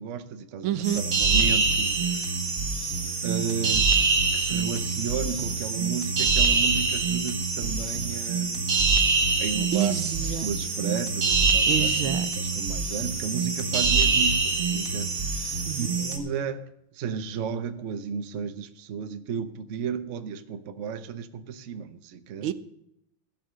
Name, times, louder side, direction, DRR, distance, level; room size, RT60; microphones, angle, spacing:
voice 1, 0.0-2.3 3.2-8.7 9.4-9.9 10.4-22.5, right 7 dB, 65° right, 0.7 m, -34 dB
voice 2, 0.6-1.0 9.7-10.5 11.7-12.3 15.7-15.9 22.4-22.5, right 11 dB, 85° right, 1.6 m, -28 dB
sound 1, 0.8-16.2, right 4 dB, 40° right, 1.8 m, -25 dB
16.5 x 6.5 x 6.7 m
omnidirectional pair, 2.3 m